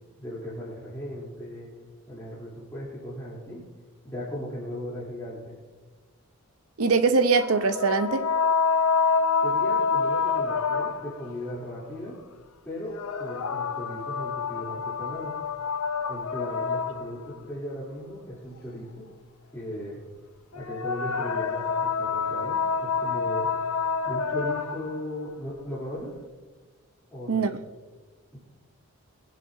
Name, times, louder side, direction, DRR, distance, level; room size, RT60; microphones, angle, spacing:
voice 1, 0.2-1.7 2.1-3.6 4.0-5.5 9.4-12.2 12.6-15.3 16.1-19.1 19.5-20.0 20.5-23.7 24.0-26.1 27.1-27.6 28.3-28.4, equal, 10° left, 3.2 m, -37 dB
voice 2, 6.8-8.3 27.3-27.5, right 4 dB, 80° right, 0.8 m, -22 dB
sound 1, 7.3-11.3 12.8-17.4 20.5-25.0, left 5 dB, 85° left, 0.7 m, -27 dB
22.5 x 10.5 x 2.7 m
head